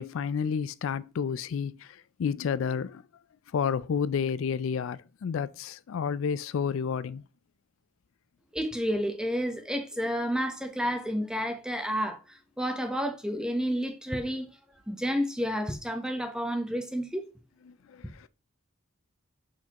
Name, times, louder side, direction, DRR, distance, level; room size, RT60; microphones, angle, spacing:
voice 1, 0.0-3.0 3.5-7.2 17.7-18.3, left 6 dB, 75° left, 0.4 m, -31 dB
voice 2, 8.5-14.5 14.9-17.3, equal, 5° right, 0.8 m, -30 dB
6.4 x 6.0 x 2.9 m
head